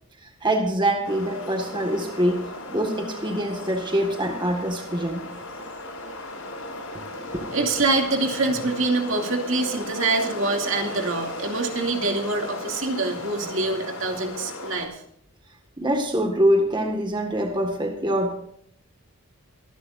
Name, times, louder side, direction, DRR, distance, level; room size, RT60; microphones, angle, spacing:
voice 1, 0.4-2.4 2.7-5.3 7.3-7.4 15.8-18.3, right 1 dB, 20° right, 3 dB, 1.7 m, -24 dB
sound 1, 1.0-14.9, left 1 dB, 75° left, 5.7 m, -36 dB
voice 2, 7.1-15.0, right 3 dB, 60° right, 2 dB, 2.5 m, -25 dB
25.0 x 11.5 x 2.6 m, 0.69 s
head